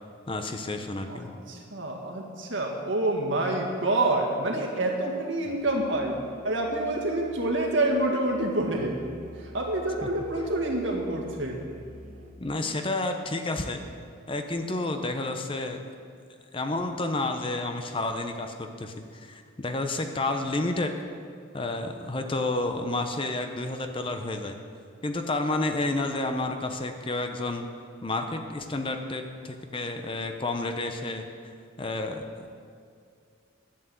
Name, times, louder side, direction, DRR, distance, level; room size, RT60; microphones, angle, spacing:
voice 1, 0.3-1.3 10.0-10.1 12.4-13.8 14.3-15.8 16.5-21.0 21.5-24.6 25.0-27.7 28.0-31.3 31.8-32.5, left 2 dB, 25° left, 6 dB, 0.7 m, -30 dB
voice 2, 1.1-6.2 6.4-9.0 9.3-11.7, right 2 dB, 65° right, 1 dB, 1.9 m, -27 dB
Musical instrument, 5.4-12.5, equal, 35° right, 1.1 m, -48 dB
11.5 x 8.2 x 7.7 m, 2.2 s
head